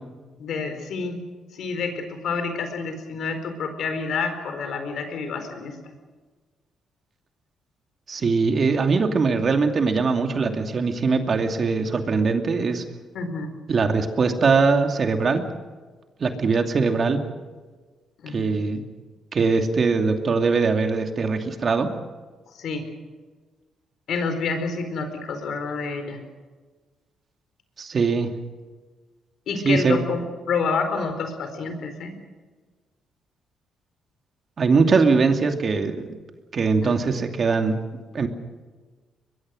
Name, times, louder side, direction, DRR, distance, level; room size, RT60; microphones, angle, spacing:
voice 1, 0.4-1.2 1.5-5.8 13.1-13.6 18.2-18.6 22.5-22.9 24.1-26.2 29.5-30.2 30.5-32.1 36.8-37.1, left 4 dB, 70° left, 7 dB, 4.4 m, -28 dB
voice 2, 8.1-12.8 13.7-15.4 16.2-17.2 18.3-18.8 19.3-21.9 27.8-28.3 29.6-30.0 34.6-36.0 36.5-37.8 38.1-38.3, right 4 dB, 45° right, 5 dB, 2.6 m, -21 dB
22.5 x 22.5 x 6.4 m, 1.4 s
cardioid pair, 90°, 0 cm